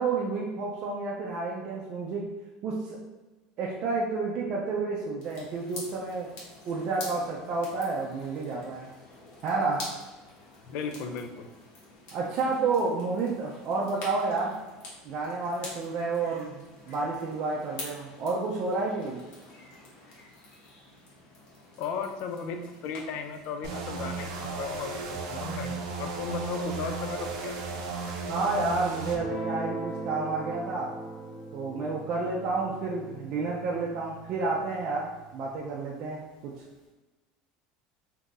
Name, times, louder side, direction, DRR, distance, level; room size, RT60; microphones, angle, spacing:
voice 1, 0.0-2.3 2.6-3.0 3.6-6.3 6.6-8.9 9.4-9.9 12.1-14.6 15.0-19.3 28.3-31.0 31.5-36.5, right 3 dB, 45° right, -3 dB, 0.4 m, -30 dB
sound 1, 5.2-24.4, left 2 dB, 75° left, 1.2 m, -47 dB
voice 2, 10.7-11.5 21.8-27.5, left 5 dB, 55° left, 6 dB, 0.4 m, -35 dB
sound 2, 23.6-29.2, right 4 dB, 90° right, 0.6 m, -35 dB
Guitar, 29.1-35.7, right 1 dB, 35° left, 1.1 m, -39 dB
2.7 x 2.5 x 3.8 m, 1.2 s
cardioid pair, 155°, 3 cm